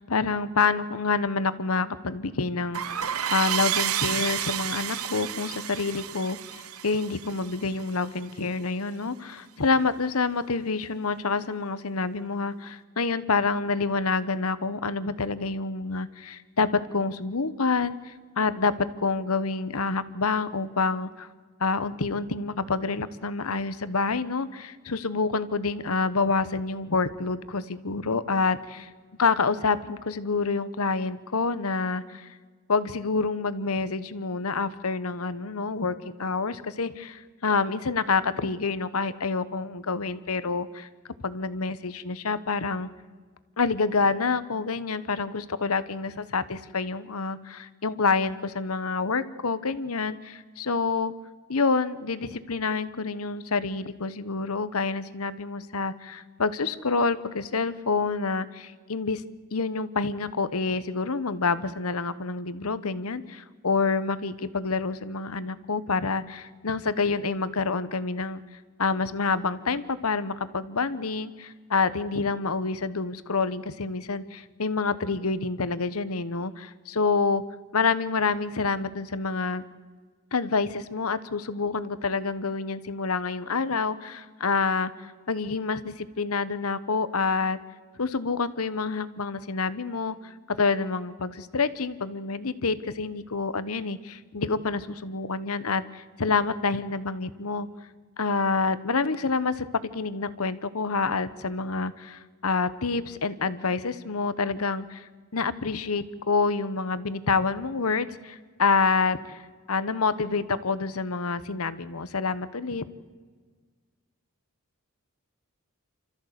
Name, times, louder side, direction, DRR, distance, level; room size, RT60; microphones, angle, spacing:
voice 1, 0.0-21.3 21.6-28.9 29.2-32.3 32.7-40.9 41.2-42.9 43.6-51.1 51.5-59.2 59.5-68.4 68.8-77.4 77.7-79.6 80.3-87.6 88.0-97.7 98.2-99.7 99.9-109.4 109.7-112.8, left 4 dB, 75° left, 15 dB, 1.1 m, -27 dB
sound 1, 2.7-8.1, right 10 dB, 80° right, 0.9 m, -30 dB
28.0 x 14.0 x 8.2 m, 1.5 s
head